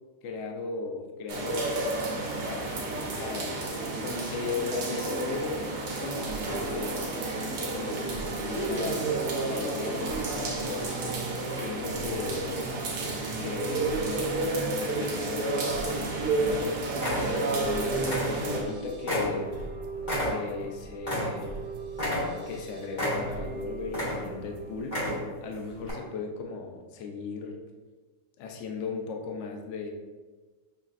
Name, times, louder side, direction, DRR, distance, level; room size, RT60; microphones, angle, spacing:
voice 1, 0.2-3.6 4.0-5.7 6.0-7.1 7.6-9.1 9.4-11.0 11.5-12.7 13.4-19.6 20.3-21.5 22.5-25.0 25.4-27.6 28.4-29.9, left 4 dB, 70° left, 2 dB, 0.7 m, -37 dB
sound 1, 1.3-18.6, right 2 dB, 65° right, 1.3 m, -31 dB
sound 2, 5.7-24.8, right 4 dB, 85° right, 1.3 m, -43 dB
sound 3, 16.5-16.6 17.0-17.7 18.0-18.7 19.1-21.6 21.9-22.6 22.9-23.5 23.9-24.5 24.8-25.4 25.8-25.9, equal, 30° left, 1.4 m, -31 dB
6.4 x 3.1 x 2.5 m, 1.3 s
omnidirectional pair, 1.9 m